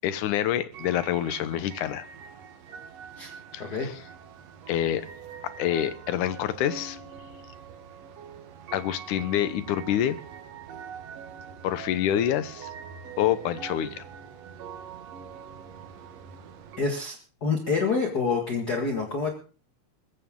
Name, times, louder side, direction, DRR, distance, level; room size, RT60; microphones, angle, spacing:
voice 1, 0.0-2.1 3.5-4.0 4.7-5.1 5.4-7.0 8.7-10.2 11.6-12.7 13.2-14.1, left 11 dB, 85° left, 14 dB, 2.4 m, -27 dB
sound 1, 0.7-16.8, right 7 dB, 65° right, 2.3 m, -44 dB
voice 2, 3.6-3.9 16.8-19.3, left 4 dB, 35° left, 2 dB, 2.0 m, -27 dB
21.0 x 15.0 x 3.8 m, 0.39 s
omnidirectional pair, 3.5 m